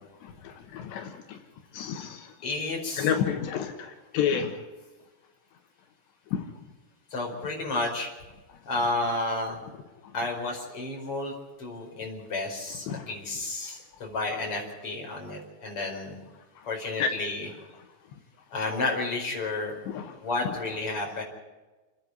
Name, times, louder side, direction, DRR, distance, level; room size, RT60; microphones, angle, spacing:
voice 1, 0.5-1.4 1.7-2.3 3.0-4.6 6.3-6.4 12.9-13.0 17.0-17.1 19.9-20.1, left 7 dB, 80° left, 5 dB, 3.5 m, -29 dB
voice 2, 2.4-3.1 7.1-8.1 8.7-9.6 10.1-11.3 11.6-16.2 16.7-17.5 18.5-19.7 20.2-21.2, left 2 dB, 30° left, 0 dB, 5.6 m, -31 dB
28.5 x 10.5 x 9.5 m, 1.2 s
omnidirectional pair, 5.0 m